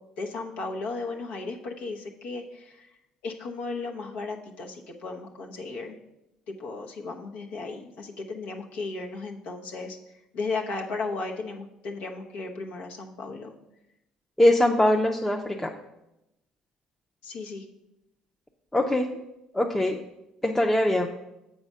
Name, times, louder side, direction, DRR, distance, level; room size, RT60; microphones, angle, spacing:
voice 1, 0.2-2.9 3.2-6.0 6.5-10.0 10.3-13.5 17.2-17.7, left 3 dB, 80° left, 0 dB, 0.9 m, -35 dB
voice 2, 14.4-15.7 18.7-19.1 19.5-20.0 20.4-21.1, left 1 dB, 10° left, 1 dB, 0.6 m, -22 dB
7.0 x 4.8 x 5.4 m, 0.90 s
supercardioid pair, 75°, 2 cm